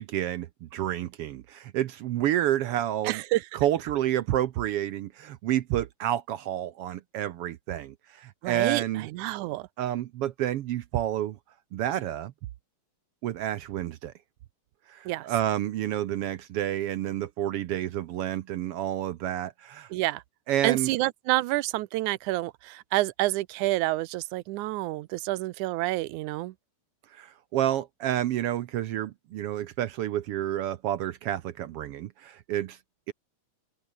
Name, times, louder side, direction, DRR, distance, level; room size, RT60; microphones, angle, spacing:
voice 1, 0.0-3.2 3.5-9.1 9.8-11.4 11.7-12.3 13.2-14.1 14.9-19.9 20.5-20.9 27.1-32.8 33.1-33.2, right 12 dB, 70° right, 1.4 m, -29 dB
voice 2, 3.0-3.5 8.4-9.7 15.1-15.3 19.9-20.2 20.6-26.5, right 18 dB, 90° right, 2.1 m, -28 dB
omnidirectional pair, 3.4 m